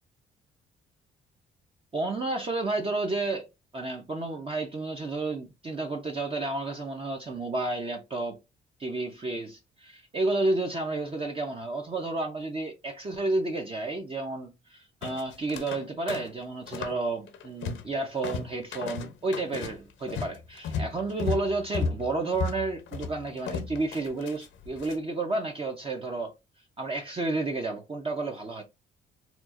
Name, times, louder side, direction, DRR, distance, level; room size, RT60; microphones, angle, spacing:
voice 1, 1.9-3.5 3.7-8.4 8.8-26.4 26.8-28.6, right 2 dB, 30° right, 0.7 m, -31 dB
sound 1, 15.0-15.8 16.1-17.0 17.3-17.9 18.2-25.0, left 5 dB, 75° left, 0.8 m, -34 dB
4.3 x 2.4 x 2.5 m
cardioid pair, 90°, 20 cm